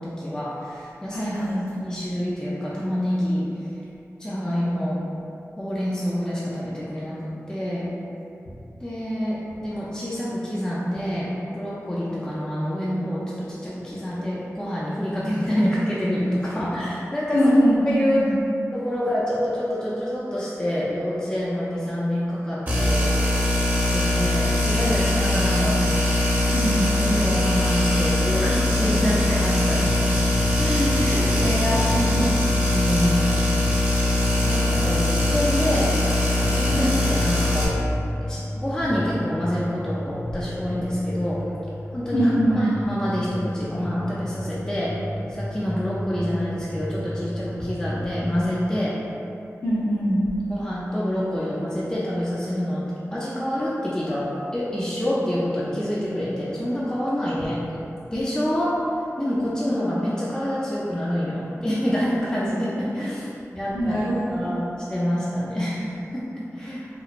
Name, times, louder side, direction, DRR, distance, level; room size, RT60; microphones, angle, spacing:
voice 1, 0.0-1.3 1.8-3.5 4.2-5.0 5.6-7.9 8.8-17.4 17.9-18.3 18.7-23.1 23.9-25.8 26.6-26.7 27.0-29.9 30.6-31.0 32.7-33.5 34.4-35.9 36.5-37.7 38.3-41.4 41.9-45.0 45.3-49.0 50.5-52.9 53.1-57.6 58.1-58.8 59.2-63.3 63.5-64.0 64.3-66.9, equal, 15° left, -8 dB, 0.3 m, -27 dB
voice 2, 1.1-1.6 17.3-18.3 26.5-26.9 30.9-32.3 34.8-34.9 36.7-36.9 42.1-42.7 49.6-50.2 63.7-64.6, equal, 60° left, -13 dB, 0.6 m, -23 dB
sound 1, 22.7-37.7, left 2 dB, 35° right, 0.7 m, -21 dB
sound 2, 29.7-48.5, equal, 75° right, 0.6 m, -33 dB
2.9 x 2.1 x 2.4 m, 2.7 s
wide cardioid pair, 75°, 5 cm